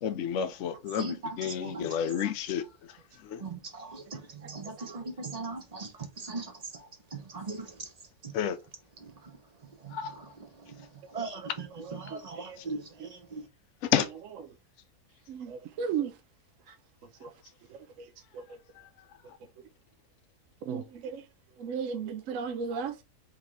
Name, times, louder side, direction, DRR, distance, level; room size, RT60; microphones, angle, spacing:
voice 1, 0.0-2.7 3.2-3.4 8.3-8.6 9.9-10.2 12.6-12.7 13.8-14.1, left 9 dB, 65° left, 0.9 m, -30 dB
voice 2, 3.4-4.0 4.4-5.9 6.3-6.5 7.3-7.6 11.1-11.4 12.0-12.8 13.3-13.4, right 3 dB, 35° right, 0.8 m, -37 dB
voice 3, 15.3-16.1 20.7-20.8 21.6-23.0, right 6 dB, 70° right, 0.9 m, -33 dB
4.1 x 3.2 x 3.6 m
omnidirectional pair, 1.6 m